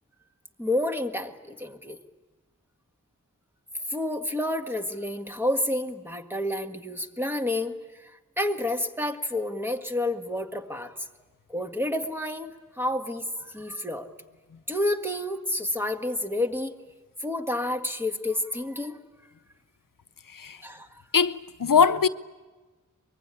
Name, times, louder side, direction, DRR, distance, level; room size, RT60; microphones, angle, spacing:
voice 1, 0.6-2.0 3.9-11.1 11.5-14.1 14.7-16.8 17.2-19.0 20.6-20.9, left 1 dB, 5° right, 1.8 m, -29 dB
voice 2, 20.3-20.6 21.1-22.1, left 6 dB, 80° left, 0.8 m, -21 dB
24.0 x 22.0 x 10.0 m
wide cardioid pair, 60°, 32 cm